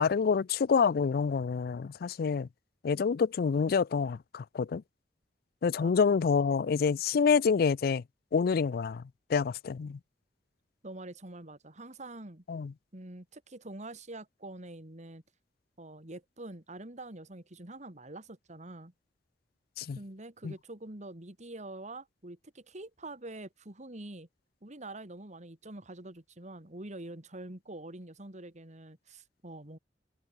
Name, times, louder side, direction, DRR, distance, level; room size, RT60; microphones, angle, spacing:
voice 1, 0.0-2.5 2.8-4.8 5.6-8.0 8.3-9.0 9.3-10.0 12.5-12.7 19.8-20.0 20.4-20.5, left 5 dB, 55° left, 0.4 m, -27 dB
voice 2, 10.8-12.4 12.9-15.2 15.8-18.9 20.0-24.3 24.6-29.8, right 2 dB, 40° right, 2.6 m, -45 dB
head